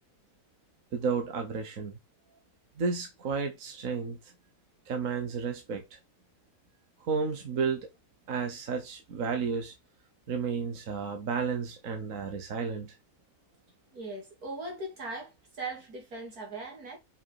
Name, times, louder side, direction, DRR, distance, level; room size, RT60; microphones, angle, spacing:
voice 1, 0.9-1.9 2.8-4.2 4.9-5.8 7.1-7.8 8.3-9.7 10.3-12.9, right 5 dB, 65° right, 1.6 m, -32 dB
voice 2, 13.9-17.0, right 2 dB, 85° right, 3.2 m, -39 dB
6.3 x 5.1 x 4.8 m
omnidirectional pair, 1.6 m